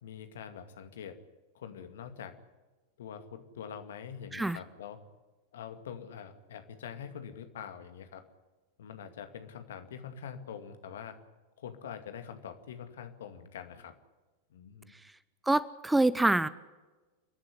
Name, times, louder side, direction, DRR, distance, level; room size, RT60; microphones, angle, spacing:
voice 1, 0.0-1.2 1.5-2.4 3.0-5.0 5.5-8.2 8.8-11.2 11.6-13.9 14.5-14.9, left 8 dB, 60° left, 8 dB, 2.2 m, -44 dB
voice 2, 15.5-16.5, right 2 dB, 5° right, 19 dB, 0.6 m, -25 dB
29.5 x 11.5 x 9.9 m, 1.2 s
figure-of-eight pair, 90°, 0 cm